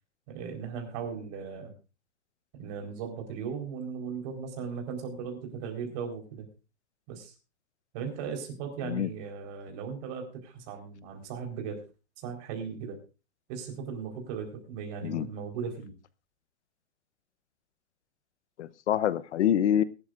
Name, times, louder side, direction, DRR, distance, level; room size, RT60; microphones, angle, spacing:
voice 1, 0.3-1.7 2.5-6.5 7.1-7.3 7.9-11.8 12.2-13.0 13.5-15.9, right 6 dB, 35° right, 2 dB, 4.3 m, -37 dB
voice 2, 18.6-19.8, left 10 dB, 75° left, 17 dB, 0.9 m, -26 dB
21.5 x 12.0 x 2.5 m, 0.32 s
hypercardioid pair, 165°, 35 cm